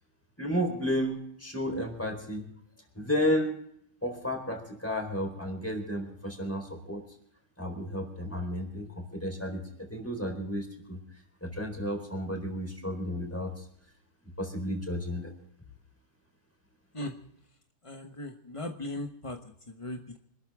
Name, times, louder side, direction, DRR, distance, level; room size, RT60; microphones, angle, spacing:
voice 1, 0.4-2.4 2.9-3.6 4.0-7.0 7.6-11.0 11.4-13.6 14.4-15.3, equal, 5° left, 4 dB, 3.9 m, -32 dB
voice 2, 17.8-19.4 19.7-20.2, left 1 dB, 30° left, 4 dB, 0.6 m, -38 dB
26.0 x 13.0 x 3.6 m, 0.69 s
omnidirectional pair, 2.4 m